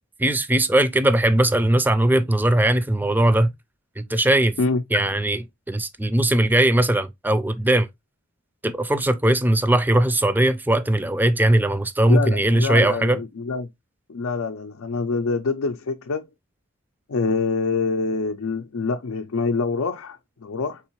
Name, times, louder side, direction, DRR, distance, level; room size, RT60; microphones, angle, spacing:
voice 1, 0.2-3.5 4.0-4.6 4.9-5.4 5.7-7.9 8.6-13.2, right 1 dB, 10° right, 0.4 m, -19 dB
voice 2, 12.1-13.7 14.1-16.3 17.1-20.8, left 4 dB, 90° left, 0.5 m, -25 dB
4.6 x 3.6 x 2.9 m
head